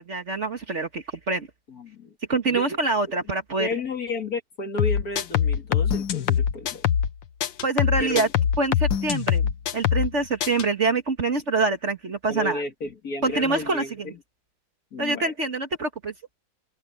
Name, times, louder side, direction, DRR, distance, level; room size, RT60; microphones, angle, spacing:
voice 1, 0.0-1.5 2.3-3.7 7.6-8.3 8.6-12.6 13.2-14.1 15.0-16.1, right 3 dB, 40° right, 1.7 m, -25 dB
voice 2, 1.7-2.1 2.5-2.7 3.6-6.8 8.0-8.3 12.3-14.2 14.9-15.3, left 2 dB, 50° left, 2.8 m, -32 dB
sound 1, 4.8-7.1 7.4-10.1 10.4-10.6, left 9 dB, 85° left, 1.8 m, -23 dB
omnidirectional pair, 2.0 m